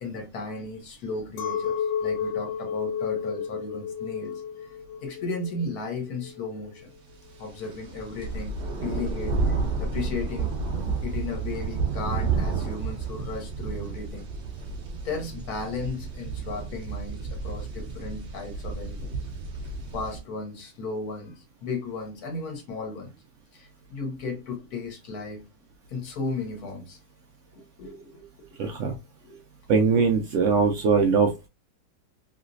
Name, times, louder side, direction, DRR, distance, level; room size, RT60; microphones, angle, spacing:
voice 1, 0.0-6.9 7.4-10.5 11.0-14.3 15.0-19.1 19.9-23.1 23.5-25.4 25.9-27.0 27.5-28.9 29.2-29.4, left 3 dB, 60° left, 1.4 m, -35 dB
Chink clink, 1.4-6.8, left 7 dB, 90° left, 1.3 m, -32 dB
sound 1, 7.5-20.2, right 4 dB, 50° right, 0.7 m, -31 dB
voice 2, 28.6-29.0 29.7-31.5, right 5 dB, 85° right, 0.6 m, -21 dB
3.2 x 2.9 x 2.5 m
omnidirectional pair, 1.9 m